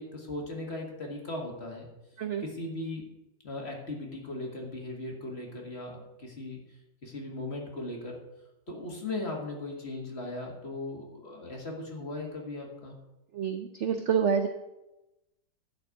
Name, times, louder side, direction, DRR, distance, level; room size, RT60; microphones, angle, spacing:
voice 1, 0.0-1.9 2.4-3.0 3.4-6.6 7.0-8.2 8.7-13.0, left 2 dB, 35° left, 1 dB, 1.9 m, -38 dB
voice 2, 13.3-14.5, right 7 dB, 65° right, 7 dB, 0.7 m, -27 dB
11.0 x 4.5 x 8.1 m, 0.96 s
omnidirectional pair, 1.9 m